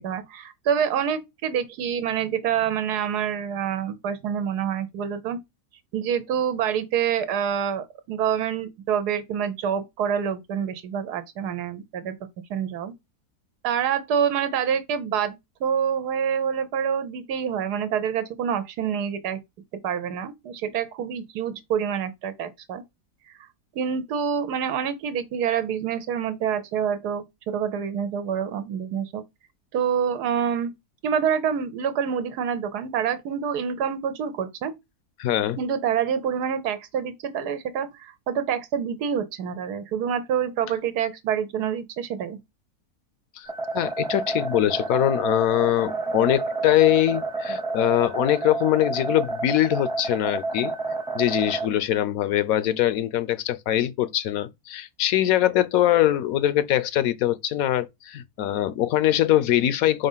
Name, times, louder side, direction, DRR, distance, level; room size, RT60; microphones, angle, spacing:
voice 1, 0.0-5.4 5.9-12.1 12.5-12.9 13.6-19.4 19.8-22.8 23.3-23.4 23.7-29.2 29.7-30.7 31.0-34.7 35.6-42.4, right 8 dB, 85° right, 1.4 m, -27 dB
voice 2, 35.2-35.6 43.4-43.5 43.7-50.7 51.1-60.1, left 13 dB, 70° left, 0.9 m, -22 dB
sound 1, 43.4-51.7, right 3 dB, 5° right, 0.7 m, -30 dB
5.1 x 3.9 x 5.5 m
omnidirectional pair, 1.6 m